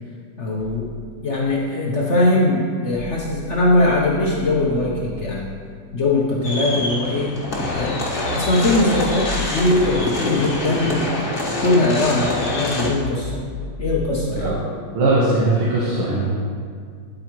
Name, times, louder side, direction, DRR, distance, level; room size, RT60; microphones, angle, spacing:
voice 1, 0.4-0.9 1.2-5.5 5.9-7.4 7.7-11.1 11.6-13.4 13.8-14.6, left 2 dB, 60° left, -3 dB, 0.7 m, -20 dB
sound 1, 0.6-5.7 7.5-14.9, left 3 dB, 35° right, 1.7 m, -35 dB
sound 2, 6.4-12.9, left 1 dB, 30° left, 1.1 m, -25 dB
voice 2, 14.9-16.2, right 2 dB, 80° right, -7 dB, 2.1 m, -19 dB
9.0 x 8.6 x 3.0 m, 2.1 s
omnidirectional pair, 2.3 m